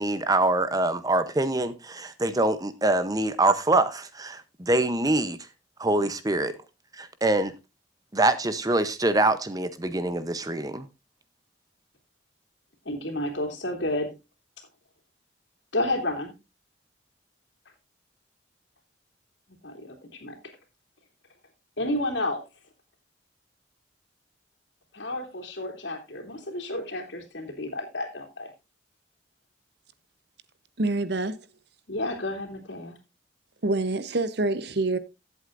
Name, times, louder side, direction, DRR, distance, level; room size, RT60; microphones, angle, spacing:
voice 1, 0.0-5.4 5.8-6.5 7.0-7.5 8.1-10.9, right 2 dB, 20° right, 0.7 m, -24 dB
voice 2, 12.8-14.1 15.7-16.3 19.6-20.4 21.8-22.4 24.9-28.5 31.9-33.0, left 1 dB, 75° left, 3.0 m, -31 dB
voice 3, 30.8-31.4 33.6-35.0, right 2 dB, 60° right, 0.9 m, -26 dB
16.0 x 8.0 x 2.5 m
head